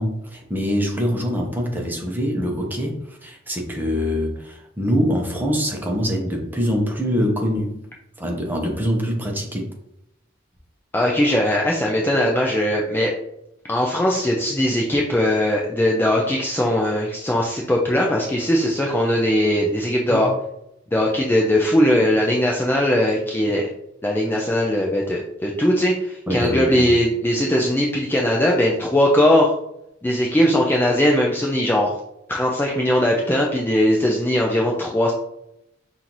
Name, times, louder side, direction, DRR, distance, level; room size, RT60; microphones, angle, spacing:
voice 1, 0.0-7.8 8.2-9.7 20.1-20.3 26.3-26.9, equal, 10° right, 1 dB, 0.7 m, -24 dB
voice 2, 10.9-13.1 13.7-20.3 20.9-23.7 24.0-29.5 30.0-31.9 32.3-35.1, left 1 dB, 10° left, -1 dB, 0.4 m, -20 dB
5.5 x 2.5 x 2.9 m, 0.81 s
head